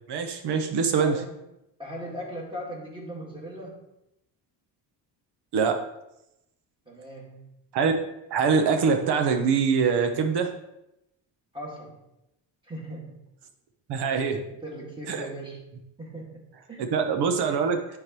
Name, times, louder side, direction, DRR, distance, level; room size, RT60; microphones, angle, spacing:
voice 1, 0.1-1.2 5.5-5.8 7.7-7.9 8.3-10.5 13.9-14.4 15.1-15.3 16.8-17.9, right 5 dB, 65° right, 6 dB, 1.0 m, -24 dB
voice 2, 1.0-1.4 1.8-3.8 6.9-7.5 11.5-12.0 12.6-13.2 14.5-16.9, right 1 dB, 10° right, -3 dB, 1.8 m, -39 dB
9.6 x 4.0 x 3.0 m, 0.86 s
cardioid pair, 125°, 43 cm